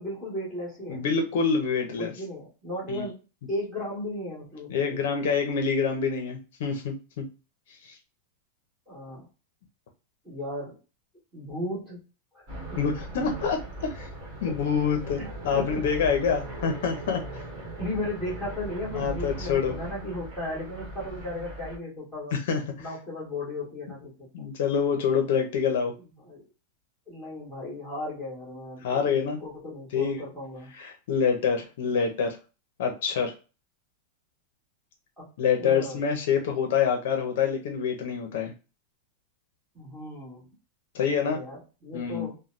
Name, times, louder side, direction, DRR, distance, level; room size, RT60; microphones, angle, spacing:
voice 1, 0.0-1.0 2.0-3.2 3.5-5.0 8.9-9.3 10.2-10.8 11.3-12.0 12.3-12.5 14.5-14.6 15.2-15.3 15.5-15.9 17.8-22.4 22.8-24.3 26.0-26.4 27.1-30.7 35.2-35.3 35.6-36.0 39.7-40.5 41.1-42.4, left 1 dB, 5° right, -7 dB, 1.7 m, -36 dB
voice 2, 0.9-2.1 2.9-3.0 4.7-7.3 7.8-8.0 12.8-14.1 14.4-17.2 19.0-19.8 22.5-22.6 24.3-25.9 28.8-29.4 29.9-30.2 30.8-32.4 32.8-33.3 35.4-38.5 40.9-41.4 41.9-42.3, left 6 dB, 60° left, 4 dB, 0.7 m, -26 dB
sound 1, 12.5-21.8, right 1 dB, 35° right, 1.4 m, -39 dB
3.2 x 2.2 x 2.5 m, 0.32 s
supercardioid pair, 175°, 0 cm